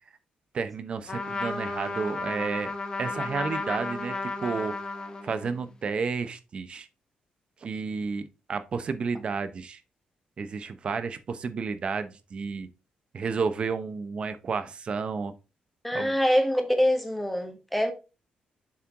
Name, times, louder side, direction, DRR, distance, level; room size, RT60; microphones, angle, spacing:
voice 1, 0.5-2.7 3.0-4.7 5.2-6.9 7.6-9.8 10.4-12.7 13.1-15.3 15.9-16.1, right 5 dB, 40° right, 0.7 m, -31 dB
Trumpet, 1.1-5.6, left 3 dB, 30° left, 1.0 m, -33 dB
voice 2, 15.8-17.9, equal, 5° left, 1.2 m, -24 dB
7.3 x 4.5 x 3.7 m
wide cardioid pair, 160°, 3 cm